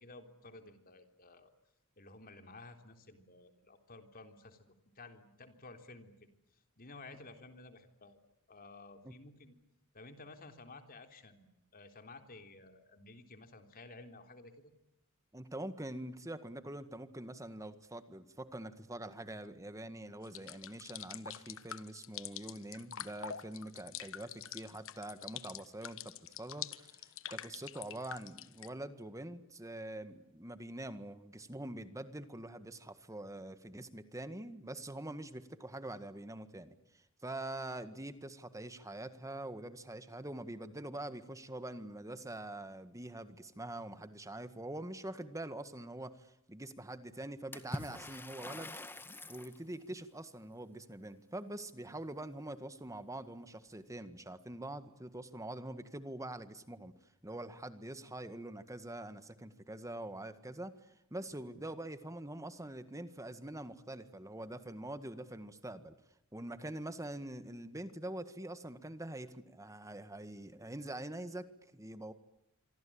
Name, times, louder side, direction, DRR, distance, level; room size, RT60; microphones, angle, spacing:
voice 1, 0.0-1.5 2.0-6.3 6.8-8.2 8.5-9.6 9.9-11.5 11.7-14.7, left 3 dB, 45° left, 6 dB, 3.6 m, -54 dB
voice 2, 15.3-26.0 26.4-48.8 49.3-56.9 57.2-65.9 66.3-71.5 71.7-72.1, right 1 dB, 15° right, 11 dB, 1.8 m, -45 dB
sound 1, 20.2-28.7, left 10 dB, 65° left, 1.3 m, -46 dB
Water / Splash splatter, 47.5-49.6, left 1 dB, 10° left, 1.7 m, -44 dB
26.5 x 24.5 x 8.8 m, 0.81 s
head